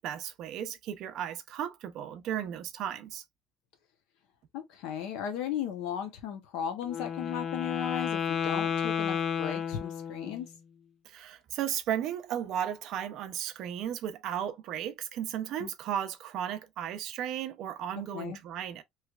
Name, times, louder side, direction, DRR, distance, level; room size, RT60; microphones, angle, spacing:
voice 1, 0.0-3.2 11.0-18.8, right 10 dB, 45° right, 0.6 m, -35 dB
voice 2, 4.5-10.5 15.6-15.7 18.1-18.4, left 9 dB, 70° left, 0.8 m, -36 dB
Wind instrument woodwind instrument, 6.8-10.5, left 7 dB, 35° left, 0.4 m, -32 dB
3.2 x 3.1 x 2.3 m
cardioid pair, 175°, 0 cm